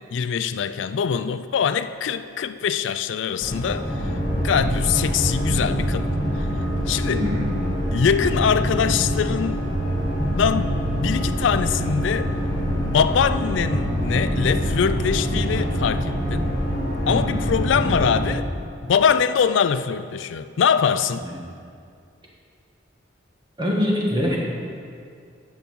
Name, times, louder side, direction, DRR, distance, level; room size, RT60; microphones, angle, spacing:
voice 1, 0.1-4.1 4.4-6.1 6.4-6.5 6.9-7.2 7.9-9.6 10.3-12.4 12.8-16.5 17.1-18.5 18.8-21.2, left 7 dB, 75° left, 12 dB, 0.4 m, -23 dB
Horror Soundscape, 3.4-18.3, equal, 20° left, 2.1 m, -29 dB
sound 1, 3.9-18.4, equal, 40° right, 2.0 m, -26 dB
voice 2, 7.1-7.9 17.1-17.5 21.2-21.4 23.6-24.4, left 1 dB, 20° right, -3 dB, 1.7 m, -25 dB
10.5 x 7.1 x 6.1 m, 2.3 s
head